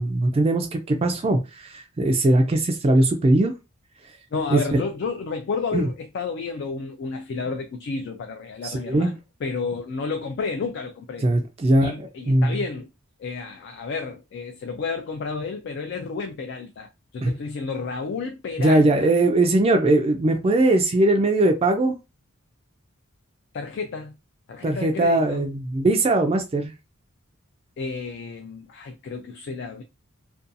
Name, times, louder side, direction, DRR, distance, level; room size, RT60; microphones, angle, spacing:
voice 1, 0.0-3.5 4.5-4.8 5.7-5.9 8.6-9.1 11.2-12.6 17.2-17.3 18.6-22.0 24.6-26.7, right 2 dB, 30° right, 0.3 m, -20 dB
voice 2, 4.3-9.1 9.4-11.3 11.8-12.9 13.2-19.1 23.5-24.1 24.5-25.5 27.8-29.8, left 4 dB, 55° left, 0.3 m, -31 dB
2.5 x 2.3 x 2.5 m
head